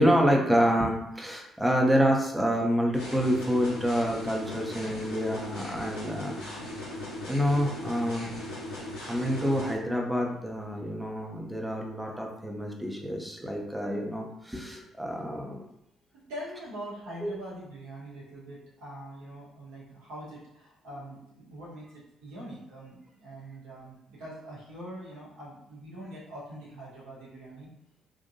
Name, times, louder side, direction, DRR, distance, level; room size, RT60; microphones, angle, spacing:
voice 1, 0.0-6.4 7.3-8.3 9.1-15.6 17.2-17.3, equal, 10° right, 0 dB, 0.8 m, -27 dB
sound 1, 2.9-9.7, left 1 dB, 75° left, 1.4 m, -38 dB
voice 2, 16.1-21.9 22.2-27.7, right 1 dB, 65° right, -6 dB, 1.1 m, -43 dB
3.8 x 2.6 x 2.7 m, 0.78 s
figure-of-eight pair, 45°, 0 cm